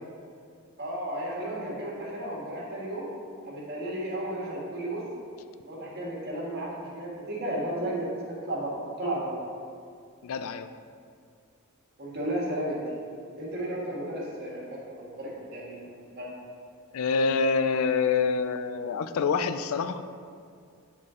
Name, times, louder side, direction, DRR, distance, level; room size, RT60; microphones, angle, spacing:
voice 1, 0.8-3.1 3.4-5.0 5.6-9.3 12.0-12.8 13.4-16.3, right 1 dB, 50° right, -5 dB, 1.7 m, -33 dB
voice 2, 10.2-10.7 16.9-20.0, left 5 dB, 70° left, 11 dB, 0.4 m, -26 dB
9.4 x 3.8 x 3.7 m, 2.3 s
head